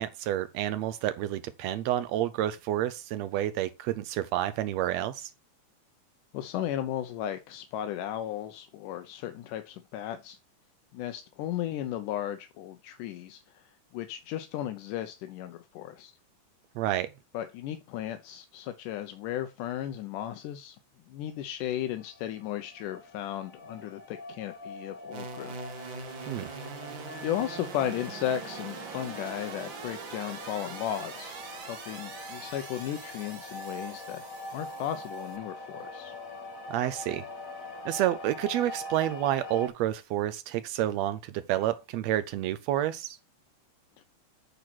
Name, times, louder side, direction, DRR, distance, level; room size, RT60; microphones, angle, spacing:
voice 1, 0.0-5.3 16.8-17.1 26.3-26.5 36.7-37.2 37.8-43.2, right 13 dB, 90° right, 1.5 m, -29 dB
voice 2, 6.3-10.4 10.9-16.1 17.3-20.8 21.1-25.6 27.2-34.2 34.5-36.2 44.0-44.1, left 11 dB, 85° left, 2.3 m, -35 dB
sound 1, 21.7-39.7, left 2 dB, 40° left, 1.2 m, -43 dB
sound 2, 25.1-35.4, right 5 dB, 50° right, 1.6 m, -43 dB
9.2 x 4.0 x 5.9 m
omnidirectional pair, 3.6 m